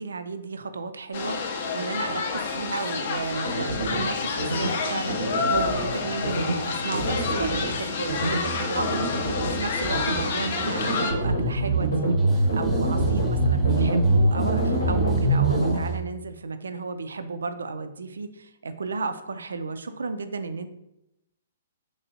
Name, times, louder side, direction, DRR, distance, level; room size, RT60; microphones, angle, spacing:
voice 1, 0.0-20.7, right 4 dB, 70° right, 9 dB, 0.3 m, -33 dB
sound 1, 1.1-11.1, left 4 dB, 50° left, 0.5 m, -29 dB
sound 2, 3.4-4.0 4.4-4.7 5.1-5.9 6.2-6.6 6.9-7.7 8.1-8.4 8.8-9.6 9.9-10.3 10.6-15.8, right 1 dB, 85° left, 1.0 m, -25 dB
sound 3, 7.0-16.0, right 3 dB, 10° right, 0.7 m, -31 dB
3.4 x 3.3 x 2.6 m, 0.87 s
figure-of-eight pair, 120°, 0 cm